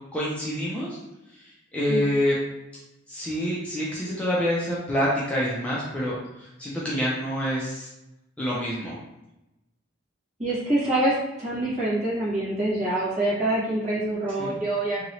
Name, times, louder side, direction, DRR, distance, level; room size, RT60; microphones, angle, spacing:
voice 1, 0.1-1.0 1.3-2.4 3.1-7.9 8.4-9.0 14.4-14.6, equal, 5° left, -7 dB, 0.4 m, -27 dB
voice 2, 10.4-15.0, right 1 dB, 35° right, -9 dB, 1.4 m, -25 dB
3.0 x 2.8 x 2.7 m, 0.95 s
head